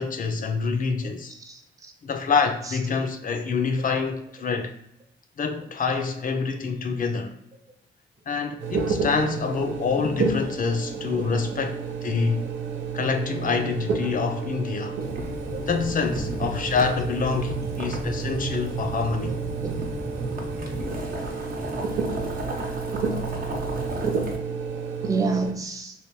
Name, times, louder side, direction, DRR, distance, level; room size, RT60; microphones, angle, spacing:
voice 1, 0.0-1.3 2.0-4.7 5.4-7.3 8.3-12.5 12.9-15.0 15.6-19.4, left 5 dB, 45° left, 0.5 m, -26 dB
voice 2, 1.0-1.9 2.7-2.8 9.2-9.4 15.5-15.6 16.1-16.3 19.2-19.7 25.0-25.9, right 4 dB, 15° right, 0.6 m, -30 dB
sound 1, 8.6-25.5, right 5 dB, 80° right, 0.6 m, -31 dB
Boiling, 15.0-24.4, right 1 dB, 45° right, 0.8 m, -33 dB
3.2 x 2.7 x 3.0 m
cardioid pair, 90°, 20 cm